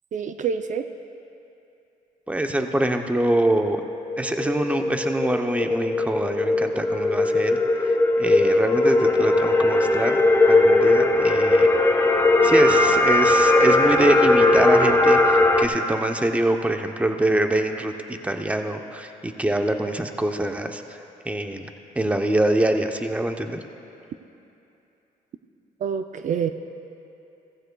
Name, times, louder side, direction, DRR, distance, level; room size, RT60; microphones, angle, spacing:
voice 1, 0.1-0.9 25.8-26.5, right 7 dB, 55° right, 8 dB, 0.5 m, -26 dB
voice 2, 2.3-3.8 4.2-11.7 12.4-23.6, right 1 dB, 10° right, 5 dB, 0.7 m, -25 dB
sound 1, 3.6-15.6, left 2 dB, 15° left, 1.0 m, -19 dB
16.5 x 14.5 x 2.3 m, 2.8 s
cardioid pair, 85°, 16 cm